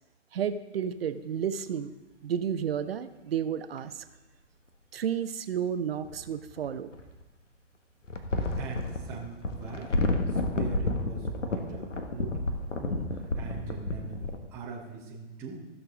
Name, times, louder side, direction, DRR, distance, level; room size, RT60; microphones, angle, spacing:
voice 1, 0.3-1.9 2.2-4.0 4.9-6.9, right 8 dB, 50° right, 11 dB, 0.7 m, -31 dB
sound 1, 3.8-3.9 6.0-7.2 8.0-14.4, left 2 dB, 75° left, 1.4 m, -31 dB
voice 2, 8.6-10.0 10.3-12.4 12.8-15.7, right 5 dB, 5° right, -4 dB, 0.5 m, -42 dB
14.5 x 6.6 x 3.5 m, 1.1 s
figure-of-eight pair, 135°, 37 cm